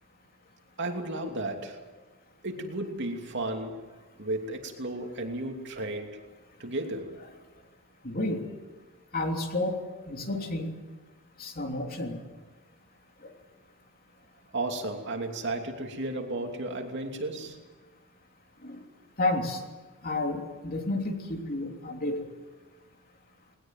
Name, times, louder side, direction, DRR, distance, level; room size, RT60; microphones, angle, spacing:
voice 1, 0.8-1.8 2.4-3.9 4.2-6.2 6.6-7.2 14.5-17.6, right 2 dB, 50° right, 3 dB, 2.9 m, -33 dB
voice 2, 8.0-8.5 9.1-10.8 11.4-12.2 13.2-13.4 18.6-18.9 19.2-19.6 20.0-22.3, left 2 dB, 40° left, 3 dB, 3.3 m, -31 dB
20.5 x 19.5 x 9.2 m, 1.3 s
head